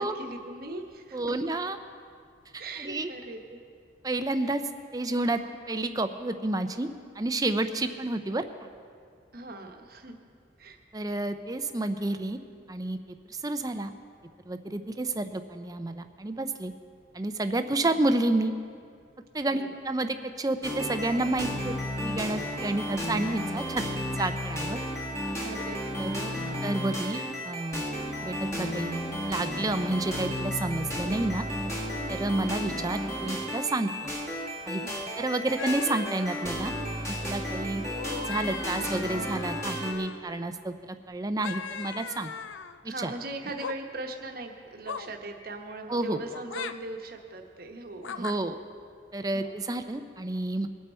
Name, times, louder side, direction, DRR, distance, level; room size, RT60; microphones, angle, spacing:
voice 1, 0.0-1.2 2.6-3.6 9.3-10.2 10.6-10.8 17.8-18.0 19.6-19.8 25.4-26.6 27.1-27.3 32.3-32.6 34.8-35.1 42.8-48.3 49.3-49.6, right 2 dB, 50° right, 3 dB, 1.1 m, -40 dB
voice 2, 1.1-1.8 2.8-3.1 4.0-4.6 4.9-5.4 5.7-6.9 7.2-8.7 10.9-12.4 12.7-13.0 13.4-13.9 14.5-16.7 17.1-18.5 19.3-23.8 24.2-24.8 26.0-27.8 28.2-29.0 29.3-31.5 32.1-34.1 34.7-34.8 35.2-36.7 37.1-37.8 38.3-42.3 42.8-43.1 45.9-46.2 48.2-48.5 49.1-50.7, right 2 dB, 20° right, 9 dB, 0.5 m, -30 dB
sound 1, 20.6-39.9, equal, 15° left, 1.5 m, -33 dB
sound 2, 35.6-37.2 37.8-40.2 41.4-42.8 43.4-43.8 44.9-45.1 46.3-46.7 48.0-48.4, left 7 dB, 75° left, 0.4 m, -39 dB
21.5 x 8.9 x 4.4 m, 2.2 s
head